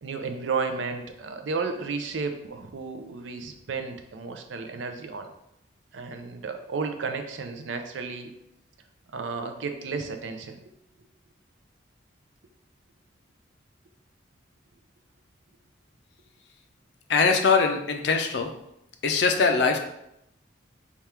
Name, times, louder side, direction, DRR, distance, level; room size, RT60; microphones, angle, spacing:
voice 1, 0.0-5.3 5.9-8.3 9.1-10.6, right 4 dB, 75° right, 6 dB, 0.5 m, -33 dB
voice 2, 17.1-18.5 19.0-19.8, left 4 dB, 60° left, 5 dB, 0.4 m, -22 dB
3.5 x 2.4 x 4.3 m, 0.80 s
head